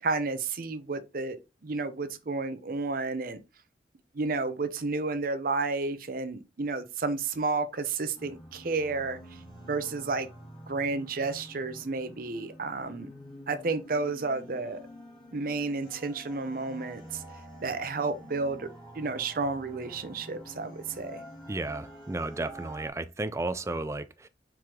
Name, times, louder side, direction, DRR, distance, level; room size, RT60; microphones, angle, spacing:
voice 1, 0.0-3.4 4.1-9.2 9.7-10.3 10.7-13.1 13.5-14.8 15.3-17.2 17.6-18.7 18.9-21.2, right 3 dB, 50° right, 0.6 m, -31 dB
sound 1, 8.1-22.9, equal, 25° left, 1.5 m, -48 dB
voice 2, 21.5-24.3, right 2 dB, 15° right, 0.3 m, -33 dB
4.6 x 3.7 x 3.0 m
head